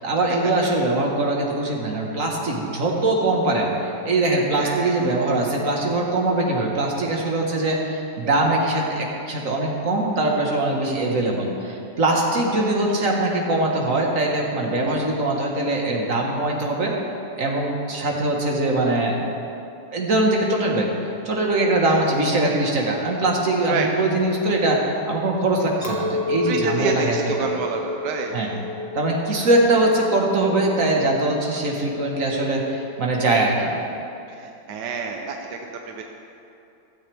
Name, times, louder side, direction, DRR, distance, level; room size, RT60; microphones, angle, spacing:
voice 1, 0.0-16.9 17.4-19.2 19.9-20.9 21.3-24.8 25.1-27.5 28.3-28.5 28.9-33.7, right 2 dB, 50° right, -1 dB, 1.8 m, -22 dB
voice 2, 4.6-5.0 12.3-12.7 14.8-15.0 21.8-22.1 23.6-23.9 26.5-28.6 34.3-36.0, right 5 dB, 80° right, 3 dB, 1.3 m, -29 dB
Chink clink, 25.8-31.2, left 3 dB, 10° left, 1.3 m, -30 dB
15.5 x 12.5 x 3.5 m, 2.8 s
omnidirectional pair, 1.9 m